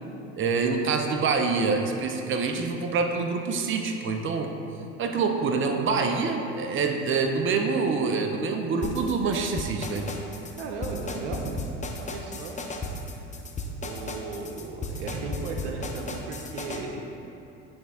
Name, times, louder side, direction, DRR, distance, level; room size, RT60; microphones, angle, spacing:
voice 1, 0.4-4.5 5.0-10.1, right 4 dB, 35° right, 4 dB, 0.6 m, -26 dB
sound 1, 8.8-16.8, left 2 dB, 20° left, 0.7 m, -35 dB
voice 2, 10.6-11.5 12.0-12.6 13.1-13.2 13.8-17.0, right 4 dB, 80° right, 2 dB, 0.8 m, -36 dB
9.6 x 3.5 x 3.6 m, 2.7 s
hypercardioid pair, 75°, 34 cm